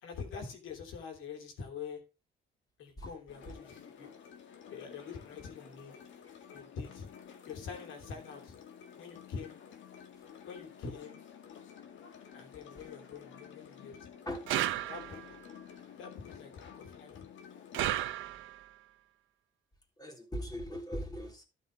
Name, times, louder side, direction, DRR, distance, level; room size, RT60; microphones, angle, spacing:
voice 1, 0.0-2.0 2.8-4.2 4.7-6.0 6.5-7.1 7.5-8.5 9.0-9.6 10.4-11.2 12.3-14.0 14.9-15.2 16.0-17.2, left 5 dB, 90° left, 3.1 m, -45 dB
sound 1, 3.3-18.0, left 8 dB, 70° left, 1.9 m, -52 dB
voice 2, 14.2-14.7 20.0-21.4, equal, 20° left, 3.3 m, -40 dB
sound 2, 14.5-15.4 17.7-18.7, right 13 dB, 90° right, 0.9 m, -33 dB
12.0 x 5.5 x 5.2 m
cardioid pair, 90°, 20 cm